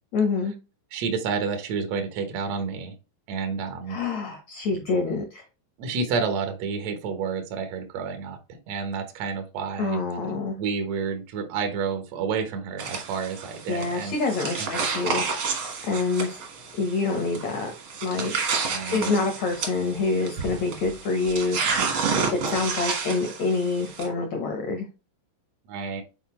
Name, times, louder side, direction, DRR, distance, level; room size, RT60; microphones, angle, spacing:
voice 1, 0.1-0.5 3.9-5.4 9.8-10.6 13.7-15.3 15.8-16.4 16.7-17.7 18.0-18.3 18.8-21.6 22.3-24.9, left 3 dB, 80° left, 4 dB, 1.6 m, -26 dB
voice 2, 0.9-2.9 3.3-4.0 5.8-8.4 8.7-10.0 10.6-14.1 14.6-14.7 18.7-19.1 25.7-26.0, right 5 dB, 90° right, 6 dB, 1.4 m, -29 dB
sound 1, 12.8-24.1, right 5 dB, 70° right, 1.2 m, -30 dB
8.1 x 4.3 x 3.1 m, 0.28 s
omnidirectional pair, 4.8 m